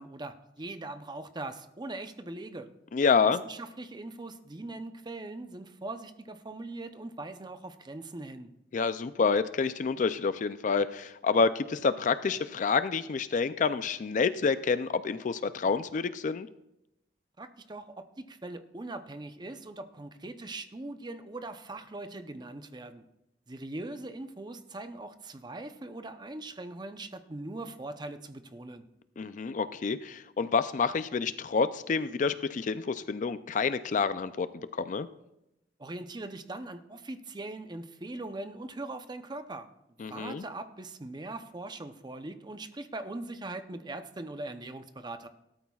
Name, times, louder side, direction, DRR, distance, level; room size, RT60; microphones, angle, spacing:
voice 1, 0.0-2.7 3.2-8.5 17.4-23.1 23.5-28.9 35.8-39.7 40.1-45.3, right 2 dB, 25° right, 9 dB, 0.7 m, -41 dB
voice 2, 2.9-3.4 8.7-16.5 29.2-34.5 34.7-35.1 40.0-40.4, left 5 dB, 45° left, 13 dB, 0.4 m, -28 dB
18.0 x 12.5 x 2.4 m, 0.87 s
head